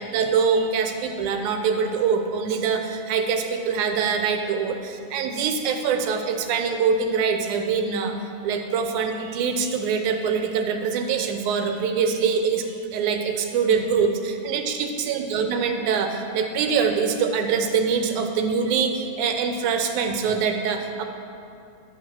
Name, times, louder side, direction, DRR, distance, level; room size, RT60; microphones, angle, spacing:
voice 1, 0.1-8.1 8.4-12.6 12.9-21.0, right 6 dB, 90° right, 5 dB, 2.2 m, -24 dB
10.5 x 5.8 x 6.0 m, 2.6 s
omnidirectional pair, 3.4 m